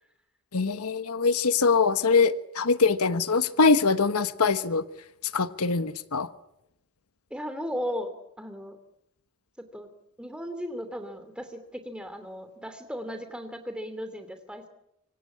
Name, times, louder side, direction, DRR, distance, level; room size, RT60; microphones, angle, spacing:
voice 1, 0.5-4.8 5.3-6.3, left 4 dB, 85° left, 12 dB, 1.2 m, -23 dB
voice 2, 7.3-8.8 9.6-9.9 10.2-14.7, equal, 5° right, 8 dB, 2.9 m, -36 dB
25.0 x 25.0 x 8.6 m, 0.83 s
head